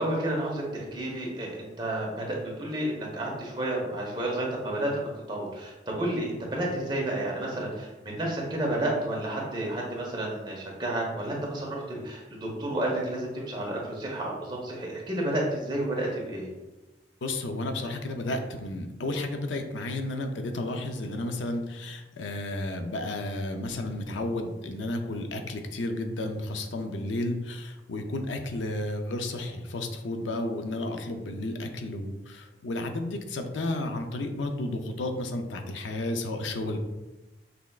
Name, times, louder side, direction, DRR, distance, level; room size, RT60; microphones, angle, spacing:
voice 1, 0.0-16.5, right 1 dB, 25° right, -3 dB, 1.1 m, -31 dB
voice 2, 17.2-36.8, left 2 dB, 90° left, 6 dB, 0.5 m, -32 dB
5.9 x 3.4 x 2.4 m, 1.1 s
head